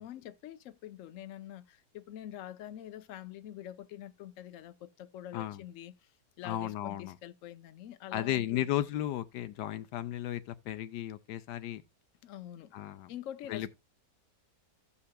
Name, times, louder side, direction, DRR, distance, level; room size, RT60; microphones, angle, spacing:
voice 1, 0.0-5.9 6.4-8.6 12.2-12.7 13.1-13.7, left 11 dB, 60° left, 0.8 m, -45 dB
voice 2, 5.3-5.6 6.4-7.2 8.1-11.8 12.7-13.1 13.5-13.7, left 12 dB, 80° left, 1.2 m, -34 dB
15.5 x 5.7 x 2.2 m
omnidirectional pair, 1.9 m